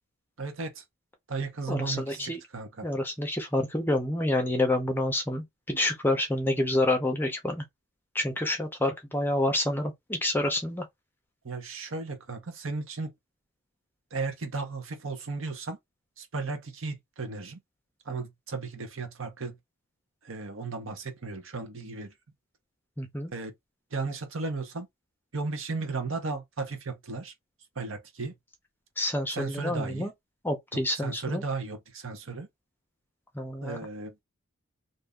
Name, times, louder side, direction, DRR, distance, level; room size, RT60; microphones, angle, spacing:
voice 1, 0.4-0.8 1.3-2.9 11.4-13.1 14.1-15.8 16.2-17.6 18.0-19.6 20.2-22.1 23.3-23.5 23.9-24.9 25.3-27.3 27.8-28.3 29.3-30.1 31.0-32.5 33.6-34.2, right 4 dB, 65° right, 0.9 m, -35 dB
voice 2, 1.7-2.4 2.8-7.6 8.1-10.8 23.0-23.3 29.0-30.1 30.4-31.4 33.3-33.8, left 1 dB, 10° left, 0.7 m, -28 dB
2.7 x 2.6 x 3.5 m
head